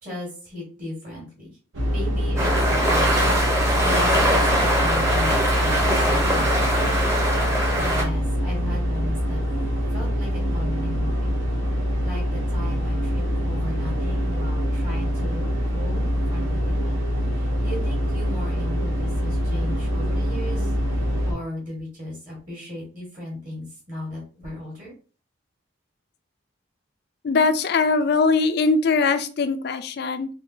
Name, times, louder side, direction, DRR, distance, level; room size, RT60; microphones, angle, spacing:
voice 1, 0.0-1.5 1.9-3.2 3.8-7.1 7.7-9.4 9.9-11.3 12.0-17.0 17.3-20.7 21.2-24.9, left 1 dB, 40° right, -4 dB, 1.4 m, -36 dB
sound 1, 1.7-21.3, equal, 70° right, 0.9 m, -24 dB
sound 2, 2.4-8.0, equal, 15° right, 0.7 m, -22 dB
voice 2, 27.2-30.3, left 4 dB, 50° left, 9 dB, 0.3 m, -21 dB
3.4 x 2.3 x 2.7 m, 0.37 s
head